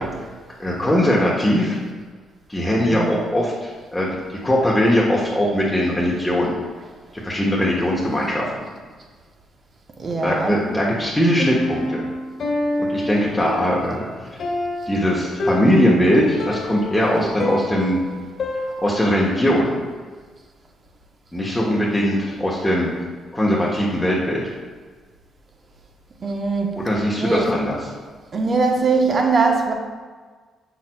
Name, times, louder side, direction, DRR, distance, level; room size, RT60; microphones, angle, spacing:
voice 1, 0.6-1.8 2.5-6.6 7.1-8.5 10.2-12.0 12.8-14.1 14.9-18.0 18.8-19.7 21.3-22.9 23.3-24.4 26.8-27.8, equal, 10° left, -5 dB, 1.0 m, -20 dB
voice 2, 2.8-3.1 10.0-10.6 26.2-26.7 27.2-27.5 28.3-29.7, right 4 dB, 40° right, 2 dB, 0.9 m, -21 dB
Piano, 11.4-19.2, left 2 dB, 55° left, 1.6 m, -27 dB
7.2 x 6.0 x 2.3 m, 1.5 s
cardioid pair, 90°, 0 cm